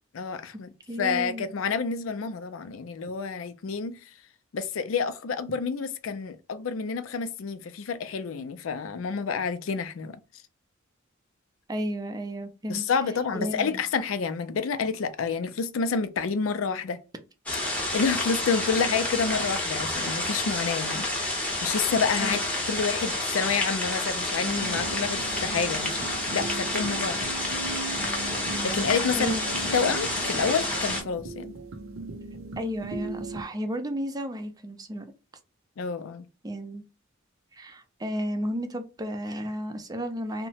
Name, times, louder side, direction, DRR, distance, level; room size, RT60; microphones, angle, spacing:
voice 1, 0.1-0.7 1.0-4.0 4.5-10.2 12.7-17.0 17.9-21.1 21.6-22.4 22.7-26.1 26.3-27.3 28.6-29.4 29.7-31.5 35.8-36.3, left 5 dB, 85° left, 0.4 m, -29 dB
voice 2, 0.9-1.5 11.7-12.8 13.3-13.8 22.2-22.4 29.2-29.4 32.6-35.1 36.4-36.8 37.5-40.5, equal, 20° right, 0.4 m, -32 dB
sound 1, 17.5-31.0, left 1 dB, 5° left, 0.8 m, -29 dB
sound 2, 24.4-33.4, right 3 dB, 85° right, 0.5 m, -38 dB
2.8 x 2.1 x 2.7 m
head